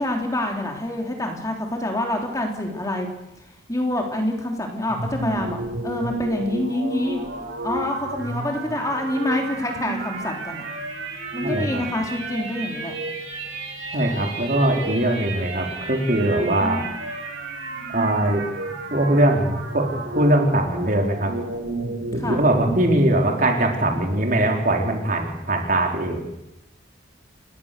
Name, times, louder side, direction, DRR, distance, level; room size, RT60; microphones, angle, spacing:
voice 1, 0.0-3.1 3.7-7.2 7.6-10.6 11.3-12.9 16.6-16.9 22.2-22.4, left 1 dB, 20° left, 2 dB, 3.5 m, -26 dB
sound 1, 4.9-23.0, right 2 dB, 85° right, 6.4 m, -32 dB
voice 2, 11.4-11.8 13.9-16.8 17.9-18.4 18.9-21.3 22.1-26.2, right 1 dB, 45° right, 2 dB, 4.0 m, -21 dB
29.5 x 18.5 x 6.8 m, 0.88 s
head